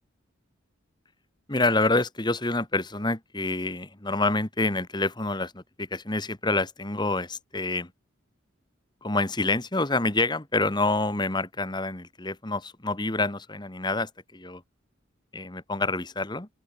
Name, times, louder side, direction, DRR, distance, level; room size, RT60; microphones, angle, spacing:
voice 1, 1.5-7.9 9.0-14.6 15.3-16.5, left 2 dB, 20° left, 1.8 m, -27 dB
open air
head